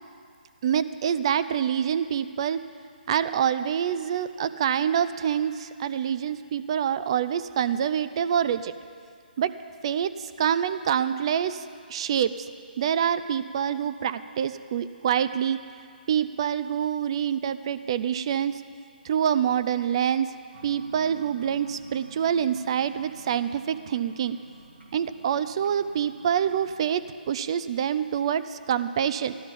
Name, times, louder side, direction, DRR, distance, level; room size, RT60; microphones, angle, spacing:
voice 1, 0.6-2.6 3.1-8.7 9.4-9.5 9.8-11.6 11.9-12.5 12.8-15.6 16.1-18.6 19.0-20.3 20.6-24.4 24.9-29.4, right 8 dB, 30° right, 13 dB, 0.4 m, -26 dB
sound 1, 20.5-27.1, right 3 dB, 85° right, 2.4 m, -50 dB
14.5 x 11.5 x 5.2 m, 2.3 s
hypercardioid pair, 165°, 6 cm